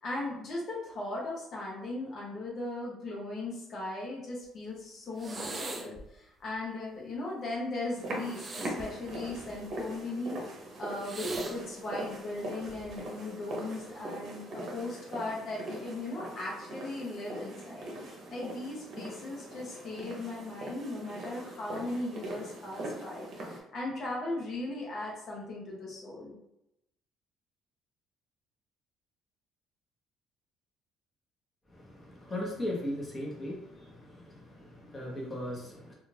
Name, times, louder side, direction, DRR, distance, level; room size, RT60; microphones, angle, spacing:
voice 1, 0.0-10.4 10.8-17.9 18.3-26.4, left 2 dB, 55° left, -4 dB, 0.8 m, -38 dB
sound 1, 5.2-6.0 8.2-9.8 11.0-11.6 12.6-13.0, right 2 dB, 30° right, 0.4 m, -40 dB
sound 2, 8.0-23.6, right 1 dB, 60° right, 0.7 m, -41 dB
voice 2, 31.7-35.9, left 1 dB, 25° left, -3 dB, 0.9 m, -38 dB
2.4 x 2.3 x 3.2 m, 0.84 s
cardioid pair, 100°, 0 cm